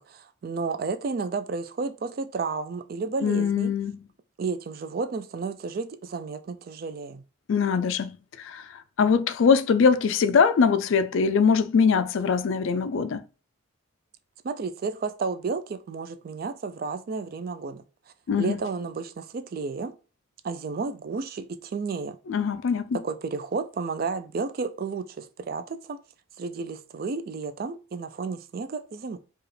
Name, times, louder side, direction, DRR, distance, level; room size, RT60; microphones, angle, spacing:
voice 1, 0.0-3.7 4.4-7.2 14.4-17.8 18.4-19.9 20.4-22.2 23.0-26.0 26.4-29.2, right 4 dB, 45° right, 0.3 m, -32 dB
voice 2, 3.2-4.0 7.5-8.1 8.4-13.2 18.3-18.6 22.3-23.0, left 6 dB, 65° left, 0.3 m, -22 dB
4.7 x 2.4 x 3.2 m
head